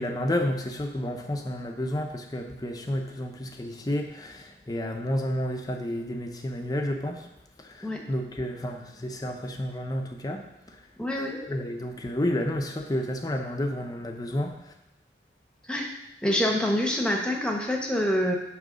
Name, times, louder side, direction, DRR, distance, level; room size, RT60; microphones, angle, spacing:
voice 1, 0.0-7.3 7.6-10.8 11.3-14.7, left 1 dB, 20° left, 3 dB, 0.6 m, -31 dB
voice 2, 11.0-11.4 15.7-15.9 16.2-18.3, left 1 dB, 5° left, 0 dB, 1.0 m, -26 dB
9.1 x 3.2 x 6.2 m, 0.89 s
head